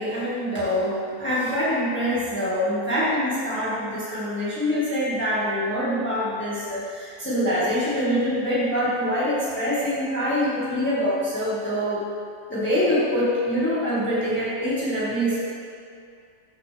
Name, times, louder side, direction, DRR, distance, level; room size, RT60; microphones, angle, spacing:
voice 1, 0.0-12.1 12.5-15.5, equal, 5° left, -10 dB, 1.9 m, -25 dB
13.5 x 6.4 x 3.5 m, 2.3 s
omnidirectional pair, 1.7 m